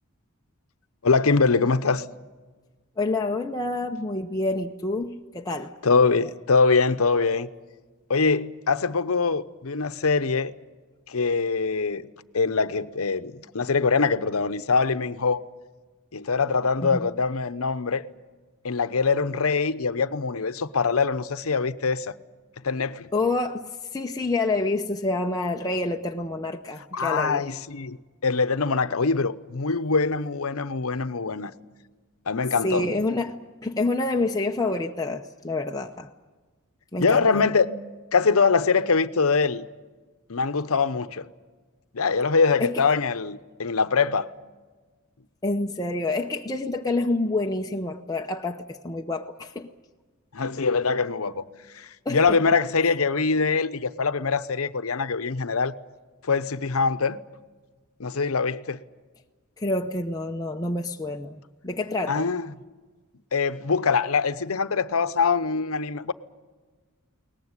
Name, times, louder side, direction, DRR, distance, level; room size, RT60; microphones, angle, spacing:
voice 1, 1.0-2.0 5.8-7.5 8.1-10.5 11.1-12.1 12.3-15.4 16.1-18.0 18.6-22.1 22.6-23.1 26.8-28.0 28.2-31.5 32.3-32.9 37.0-37.7 38.1-39.7 40.3-41.3 41.9-44.3 50.3-51.4 51.7-55.7 56.2-57.2 58.0-58.8 62.1-62.5 63.3-66.1, left 4 dB, 75° left, 0.8 m, -23 dB
voice 2, 3.0-5.7 16.9-17.0 23.1-27.4 32.6-36.1 36.9-37.4 42.6-42.7 45.4-49.7 52.1-52.4 59.6-62.3, left 2 dB, 15° left, 0.7 m, -28 dB
22.0 x 19.5 x 9.7 m
head